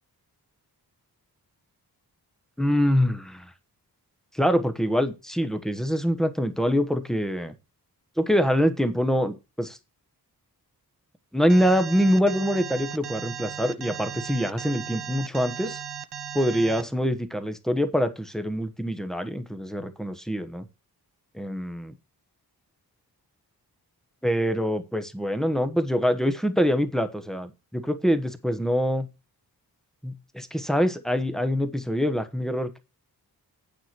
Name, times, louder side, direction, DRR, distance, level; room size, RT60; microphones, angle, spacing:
voice 1, 2.6-3.5 4.3-7.5 8.2-9.8 11.3-15.8 16.3-20.7 21.3-21.9 24.2-29.1 30.0-32.8, equal, ahead, 9 dB, 1.1 m, -25 dB
Alarm, 11.5-16.8, right 8 dB, 85° right, 0.9 m, -36 dB
9.1 x 4.9 x 6.0 m, 0.28 s
wide cardioid pair, 120°, 39 cm